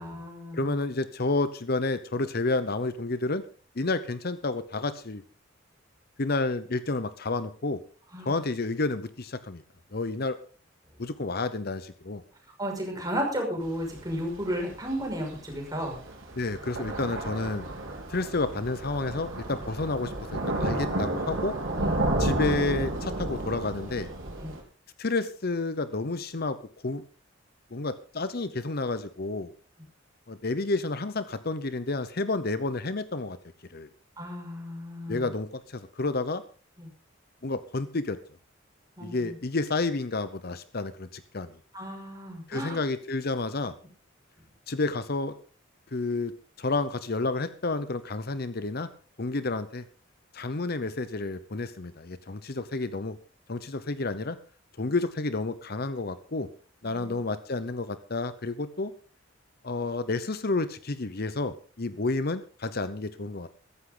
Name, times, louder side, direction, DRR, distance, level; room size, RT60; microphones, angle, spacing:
voice 1, 0.0-0.7 8.1-8.4 12.6-16.0 21.8-22.0 24.4-24.5 34.2-35.3 36.8-36.9 39.0-39.4 41.7-42.8, equal, 20° right, 1 dB, 5.9 m, -34 dB
voice 2, 0.5-3.4 3.8-5.2 6.2-7.8 8.3-9.6 9.9-10.4 11.0-12.2 16.4-17.7 18.1-21.5 22.2-24.1 25.0-26.6 26.8-27.0 27.7-29.5 30.3-33.4 33.7-33.9 35.1-36.4 37.4-38.2 39.0-41.6 42.5-43.8 44.7-45.3 45.9-46.3 46.6-48.9 49.2-49.8 50.3-53.2 53.5-54.4 54.8-56.5 56.8-58.9 59.6-63.5, left 3 dB, 50° left, 13 dB, 0.8 m, -30 dB
Thunder / Rain, 13.6-24.6, right 1 dB, 80° right, 4.1 m, -32 dB
15.0 x 14.5 x 3.9 m, 0.39 s
head